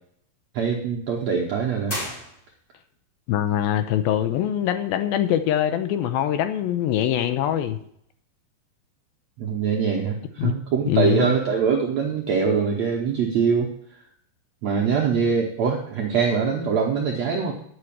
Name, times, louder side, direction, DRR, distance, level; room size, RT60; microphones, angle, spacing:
voice 1, 0.5-2.0 9.4-13.7 14.6-17.5, right 6 dB, 75° right, -1 dB, 1.6 m, -23 dB
sound 1, 1.9-2.9, left 1 dB, 25° left, 3.9 m, -34 dB
voice 2, 3.3-7.8 10.4-10.5 10.9-11.3, left 11 dB, 80° left, 9 dB, 2.4 m, -23 dB
9.2 x 6.3 x 8.6 m, 0.69 s
omnidirectional pair, 4.5 m